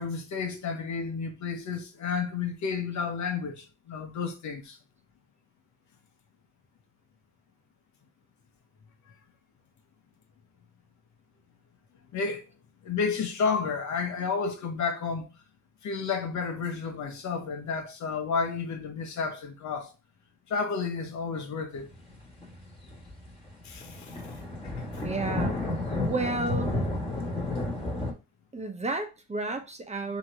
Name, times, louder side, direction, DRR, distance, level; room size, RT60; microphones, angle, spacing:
voice 1, 0.0-4.8 12.1-12.4 12.8-15.3 15.8-19.9 20.5-21.9 23.6-24.2, left 5 dB, 70° left, 1.2 m, -31 dB
sound 1, 21.9-28.1, left 2 dB, 20° left, 1.7 m, -32 dB
voice 2, 25.0-25.6 26.0-26.7 28.5-30.2, right 3 dB, 20° right, 1.0 m, -32 dB
3.7 x 3.0 x 4.5 m
cardioid pair, 90°, 30 cm